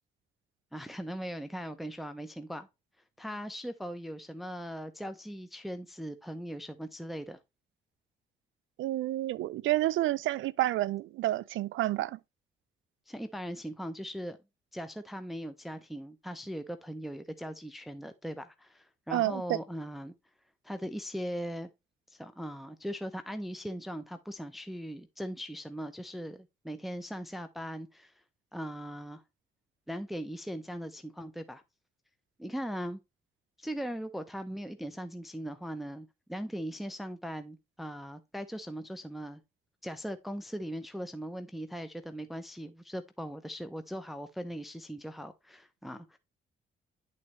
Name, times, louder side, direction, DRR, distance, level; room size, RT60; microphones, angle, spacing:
voice 1, 0.7-2.7 3.2-7.4 13.1-14.4 14.7-20.1 20.6-21.7 22.1-28.2 28.5-29.2 29.9-31.6 32.4-33.0 33.6-39.4 39.8-46.2, equal, ahead, 0.7 m, -39 dB
voice 2, 8.8-12.2 19.1-19.6, right 15 dB, 80° right, 0.5 m, -29 dB
10.5 x 4.1 x 3.1 m
cardioid pair, 90°, 20 cm